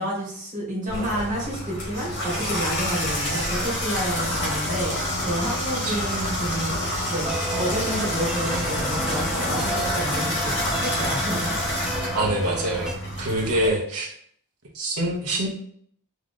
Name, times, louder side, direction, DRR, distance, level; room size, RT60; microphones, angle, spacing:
voice 1, 0.0-6.8 7.1-11.6, equal, 35° right, -5 dB, 1.7 m, -30 dB
Water tap faucet / Bathtub (filling or washing), 0.9-13.7, left 1 dB, 50° left, 1.7 m, -28 dB
sound 1, 7.2-12.9, right 1 dB, 5° right, 0.3 m, -32 dB
voice 2, 12.1-12.9 13.2-14.1 14.7-15.5, right 1 dB, 80° right, -1 dB, 1.0 m, -25 dB
3.8 x 3.1 x 3.6 m, 0.63 s
head